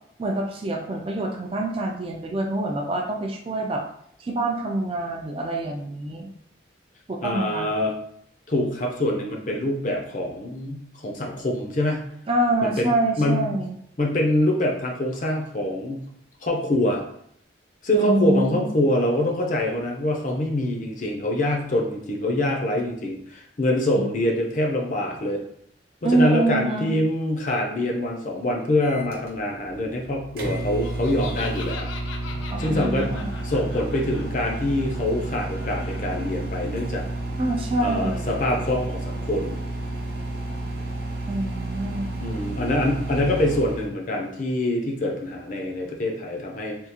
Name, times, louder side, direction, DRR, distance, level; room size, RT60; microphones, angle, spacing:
voice 1, 0.2-3.8 4.2-6.3 7.1-7.7 12.3-13.7 17.9-18.7 23.9-24.1 26.0-27.0 32.5-33.3 37.4-38.3 41.3-42.2, right 2 dB, 30° right, 2 dB, 0.3 m, -25 dB
voice 2, 7.2-7.9 8.5-12.1 12.6-13.5 14.0-16.0 16.4-17.0 17.8-25.4 26.0-31.9 32.6-33.1 33.4-37.1 37.8-39.6 42.2-46.8, left 1 dB, 40° left, 1 dB, 0.5 m, -25 dB
Microwave oven, 28.8-43.9, right 2 dB, 50° right, 0.8 m, -31 dB
Laughter, 30.7-36.3, left 4 dB, 90° left, 0.5 m, -41 dB
3.5 x 2.4 x 2.8 m, 0.68 s
head